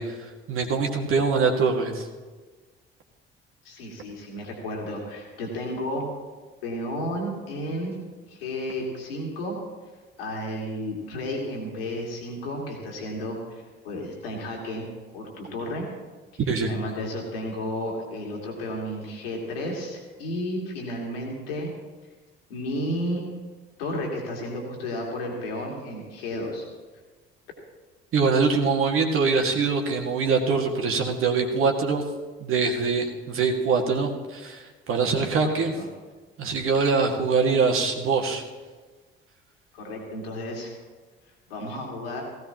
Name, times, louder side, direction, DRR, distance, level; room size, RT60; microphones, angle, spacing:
voice 1, 0.0-2.1 16.4-16.7 28.1-32.0 32.4-35.7 36.4-38.4, right 4 dB, 45° right, 2 dB, 2.0 m, -23 dB
voice 2, 3.6-6.1 6.6-8.0 8.3-9.6 10.2-14.9 15.1-15.9 16.3-16.4 16.7-21.7 22.5-23.2 23.8-26.6 35.4-35.9 39.7-40.7 41.5-42.2, left 1 dB, 70° left, 0 dB, 2.7 m, -32 dB
17.5 x 16.5 x 3.0 m, 1.4 s
figure-of-eight pair, 55°, 30 cm